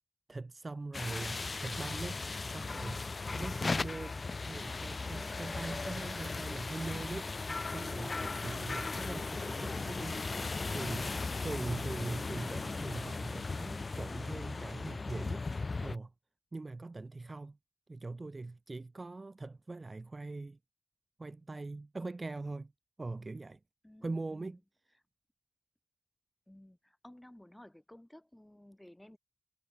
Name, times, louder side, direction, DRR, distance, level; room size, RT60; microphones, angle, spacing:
voice 1, 0.3-3.0 3.3-10.3 10.7-11.2 11.4-15.4 15.8-16.1 16.5-17.6 17.9-20.6 21.2-22.7 23.0-23.6 24.0-24.6, right 3 dB, 30° right, 0.5 m, -42 dB
sound 1, 0.9-16.0, left 3 dB, 40° left, 0.7 m, -37 dB
voice 2, 23.8-24.6 26.5-29.2, left 1 dB, 10° left, 7.9 m, -55 dB
wide cardioid pair, 145°, 0 cm